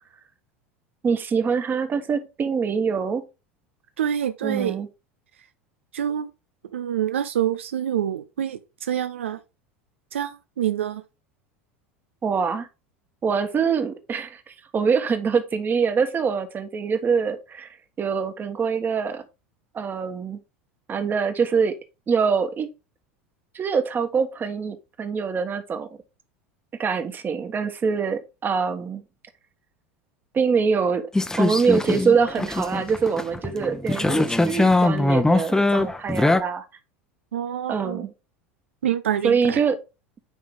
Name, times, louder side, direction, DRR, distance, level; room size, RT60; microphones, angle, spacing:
voice 1, 1.0-3.2 4.4-4.9 12.2-12.7 13.2-19.2 19.7-20.4 20.9-21.7 22.1-22.7 23.5-25.9 26.8-29.0 30.3-31.1 31.3-36.6 37.7-38.1 39.2-39.8, right 6 dB, 30° right, 1.3 m, -24 dB
voice 2, 4.0-4.7 5.9-6.3 6.7-9.4 10.1-11.0 37.3-38.1 38.8-39.6, right 10 dB, 85° right, 0.5 m, -26 dB
sound 1, 31.1-36.4, left 2 dB, 10° left, 0.8 m, -21 dB
9.4 x 3.6 x 3.6 m
hypercardioid pair, 85°, 7 cm